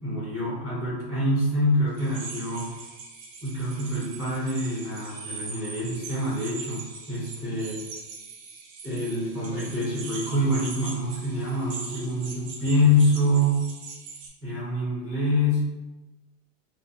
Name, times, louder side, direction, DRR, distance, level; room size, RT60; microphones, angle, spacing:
voice 1, 0.0-2.8 3.4-6.8 7.1-7.8 8.8-13.7 14.4-15.6, left 1 dB, 5° right, -15 dB, 0.4 m, -26 dB
sound 1, 1.9-14.3, right 4 dB, 80° right, 0.8 m, -41 dB
2.3 x 2.2 x 3.5 m, 1.1 s
supercardioid pair, 180°, 49 cm